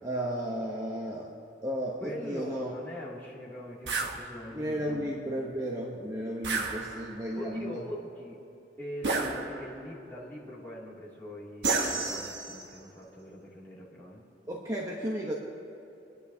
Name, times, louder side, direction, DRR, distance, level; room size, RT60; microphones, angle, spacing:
voice 1, 0.0-1.3 1.6-2.7 4.5-7.8 14.5-15.3, equal, 20° right, -3 dB, 1.0 m, -34 dB
voice 2, 2.0-5.0 7.3-8.4 8.8-14.2, equal, 10° left, -8 dB, 2.7 m, -42 dB
sound 1, 3.9-4.2 6.4-7.3 9.0-9.8 11.6-12.7, right 4 dB, 70° right, 1.5 m, -31 dB
29.5 x 10.5 x 2.8 m, 2.9 s
head